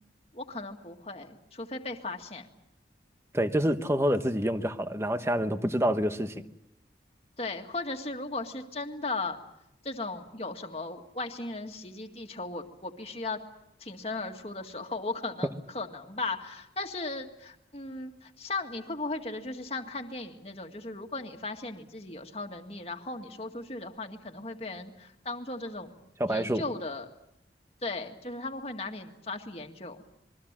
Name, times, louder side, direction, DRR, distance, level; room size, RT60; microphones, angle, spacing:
voice 1, 0.3-2.5 7.4-9.4 9.8-13.4 13.8-25.9 26.3-27.1 27.8-30.0, left 3 dB, 35° left, 4 dB, 2.0 m, -37 dB
voice 2, 3.3-6.4 26.2-26.6, equal, 15° right, 9 dB, 1.1 m, -27 dB
27.0 x 22.5 x 7.5 m, 0.83 s
head